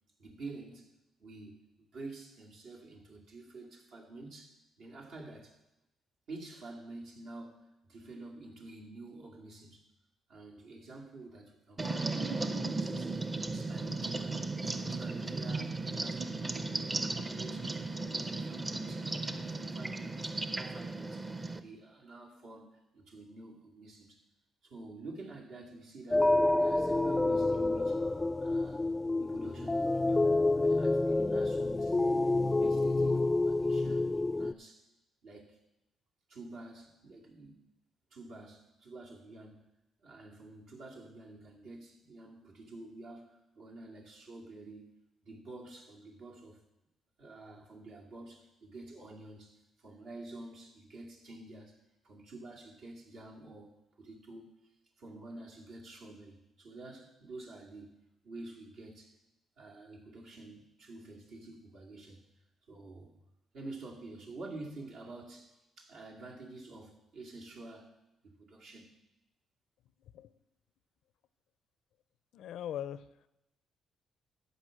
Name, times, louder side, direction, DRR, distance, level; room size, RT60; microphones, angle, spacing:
voice 1, 0.2-0.9 1.2-1.6 1.9-5.6 6.3-9.9 10.3-24.2 24.6-28.0 28.4-28.9 29.2-34.9 35.2-35.6 36.3-37.6 38.1-39.7 40.0-44.9 45.2-46.6 47.2-51.8 52.0-54.6 55.0-58.0 58.2-59.1 59.6-62.2 62.7-63.2 63.5-67.9 68.2-68.9, right 2 dB, 75° right, -1 dB, 2.5 m, -49 dB
sound 1, 11.8-21.6, right 3 dB, 25° right, 0.7 m, -36 dB
sound 2, 26.1-34.5, left 2 dB, 15° left, 0.3 m, -28 dB
voice 2, 70.0-70.3 72.3-73.1, left 10 dB, 80° left, 16 dB, 0.5 m, -40 dB
14.0 x 5.2 x 7.5 m, 0.93 s
cardioid pair, 90°, 0 cm